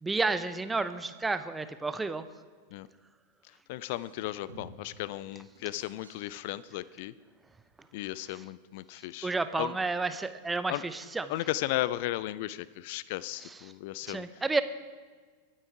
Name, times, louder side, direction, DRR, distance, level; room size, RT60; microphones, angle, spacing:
voice 1, 0.0-2.2 9.2-11.3 14.1-14.6, right 3 dB, 10° right, 12 dB, 0.8 m, -31 dB
voice 2, 3.7-7.1 7.9-9.8 10.7-10.8 11.3-14.3, left 16 dB, 50° left, 19 dB, 0.5 m, -35 dB
sound 1, 3.9-4.9 5.4-6.7 7.8-7.9, right 1 dB, 80° right, 3.2 m, -52 dB
22.5 x 8.9 x 4.7 m, 1.5 s
figure-of-eight pair, 90°, 0 cm